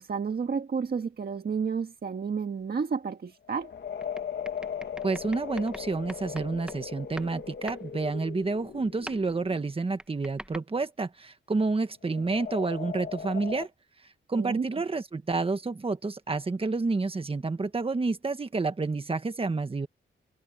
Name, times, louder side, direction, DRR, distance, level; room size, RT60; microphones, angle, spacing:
voice 1, 0.0-3.7 14.4-14.6, right 5 dB, 50° right, 1.6 m, -31 dB
sound 1, 2.6-2.7 3.9-6.9 7.2-7.9 9.1-9.3 10.0-10.6, right 1 dB, 5° right, 1.2 m, -44 dB
sound 2, 3.4-9.7 12.0-13.7, left 7 dB, 60° left, 1.6 m, -38 dB
voice 2, 5.0-13.7 14.3-19.9, right 3 dB, 25° right, 1.4 m, -29 dB
wide cardioid pair, 135°, 20 cm